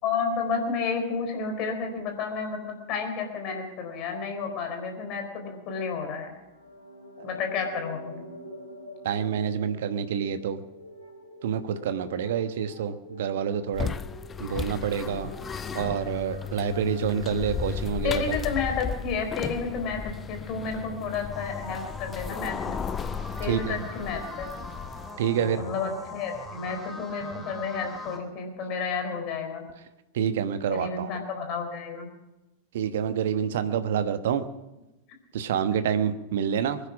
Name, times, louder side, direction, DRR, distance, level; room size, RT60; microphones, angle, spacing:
voice 1, 0.0-6.3 7.2-8.2 18.0-22.8 23.4-24.5 25.6-29.7 30.7-32.1, left 5 dB, 40° left, 4 dB, 4.1 m, -31 dB
sound 1, 6.2-18.0, equal, 85° left, 4.4 m, -46 dB
voice 2, 9.0-10.6 11.4-14.0 14.4-15.3 15.7-18.4 23.4-23.8 25.2-25.6 30.1-31.1 32.7-34.4 35.3-36.8, right 8 dB, 55° right, 11 dB, 1.1 m, -27 dB
sound 2, 13.7-25.2, left 6 dB, 20° left, 0.6 m, -35 dB
sound 3, 21.3-28.2, left 2 dB, 5° left, 2.9 m, -41 dB
22.5 x 10.0 x 6.1 m, 1.0 s
figure-of-eight pair, 90°, 0 cm